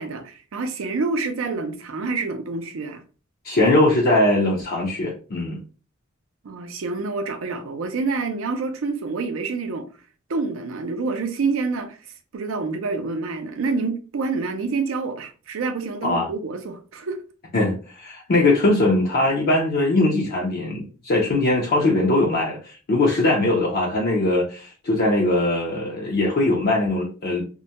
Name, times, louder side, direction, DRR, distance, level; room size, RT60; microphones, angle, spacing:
voice 1, 0.0-3.0 6.4-9.8 10.3-17.2, right 4 dB, 70° right, 0.4 m, -27 dB
voice 2, 3.4-5.6 16.0-16.3 17.5-27.4, left 2 dB, 50° left, 0.5 m, -21 dB
2.2 x 2.1 x 2.7 m
head